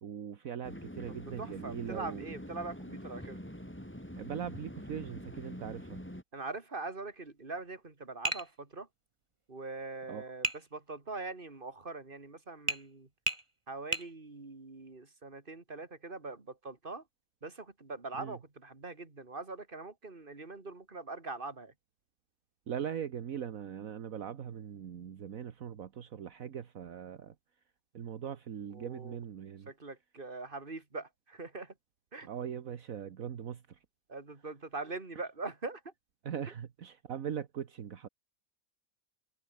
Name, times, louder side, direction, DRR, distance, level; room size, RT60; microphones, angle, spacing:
voice 1, 0.0-2.3 4.2-6.0 10.1-10.2 18.2-18.4 22.7-27.3 27.9-29.7 32.2-33.8 36.2-38.1, right 8 dB, 65° right, 1.6 m, -40 dB
sound 1, 0.6-6.2, equal, 5° left, 5.5 m, -45 dB
voice 2, 1.1-3.4 6.3-8.9 9.5-13.1 13.7-17.0 17.4-21.7 28.7-29.2 29.7-31.7 32.1-32.3 34.1-35.9, right 3 dB, 35° right, 3.0 m, -42 dB
Tap, 8.2-8.5 10.4-10.6 12.7-12.9 13.3-13.4 13.9-14.1, right 2 dB, 20° right, 2.5 m, -32 dB
omnidirectional pair, 1.6 m